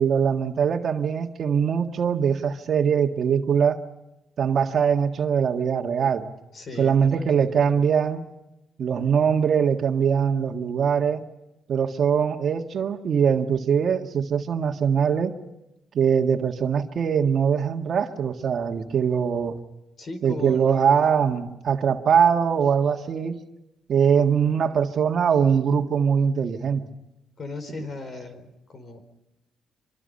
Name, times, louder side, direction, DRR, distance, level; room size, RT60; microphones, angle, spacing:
voice 1, 0.0-3.8 4.4-6.2 6.8-8.3 8.8-11.2 11.7-15.3 15.9-19.6 20.2-23.4 23.9-26.8, right 7 dB, 55° right, 5 dB, 1.7 m, -22 dB
voice 2, 6.5-7.9 20.0-21.1 27.4-29.0, left 3 dB, 45° left, 9 dB, 4.4 m, -37 dB
25.5 x 24.5 x 5.4 m, 0.92 s
cardioid pair, 90°, 0 cm